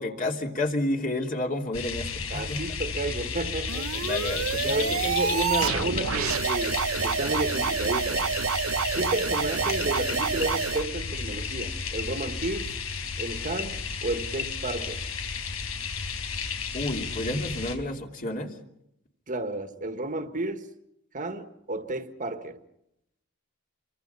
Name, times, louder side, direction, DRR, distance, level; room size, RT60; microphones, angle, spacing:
voice 1, 0.0-2.6 4.0-5.0 16.7-18.5, left 1 dB, 40° left, 3.0 m, -30 dB
sound 1, 1.7-17.8, left 5 dB, 85° left, 4.7 m, -33 dB
voice 2, 2.3-4.1 4.6-8.3 8.9-12.7 13.2-15.0 19.3-20.7 21.1-22.6, right 2 dB, 40° right, 1.7 m, -32 dB
sound 2, 3.7-10.8, right 6 dB, 75° right, 0.9 m, -28 dB
28.0 x 24.5 x 5.6 m
head